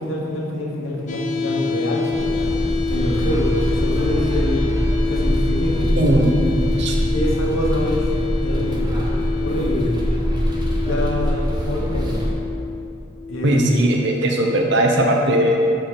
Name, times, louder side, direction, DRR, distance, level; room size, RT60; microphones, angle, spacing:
voice 1, 0.0-2.6 2.9-4.6 5.1-5.9 7.1-8.1 8.4-9.0 9.4-10.0 10.7-12.2 13.3-13.8, left 1 dB, 75° left, -2 dB, 1.1 m, -25 dB
sound 1, 1.1-15.0, left 4 dB, 35° left, 0.4 m, -27 dB
sound 2, 2.1-12.3, equal, 20° right, 0.7 m, -23 dB
voice 2, 6.0-7.0 13.4-15.6, right 1 dB, 60° right, 1 dB, 0.8 m, -18 dB
6.5 x 3.8 x 5.0 m, 2.6 s
head